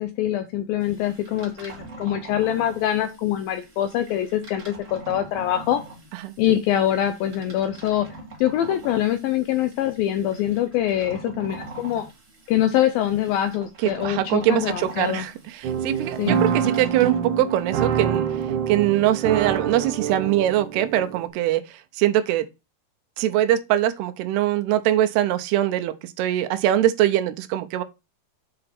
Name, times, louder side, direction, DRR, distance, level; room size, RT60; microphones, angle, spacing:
voice 1, 0.0-5.8 6.4-8.1 8.4-12.0 12.5-15.3 16.2-16.4, left 11 dB, 80° left, 2.1 m, -24 dB
sound 1, 0.8-17.2, right 2 dB, 30° right, 1.4 m, -43 dB
voice 2, 13.8-18.3 18.7-22.5 23.2-27.8, right 12 dB, 80° right, 2.6 m, -22 dB
sound 2, 15.6-21.3, right 8 dB, 65° right, 2.2 m, -26 dB
7.7 x 5.0 x 4.3 m
omnidirectional pair, 4.9 m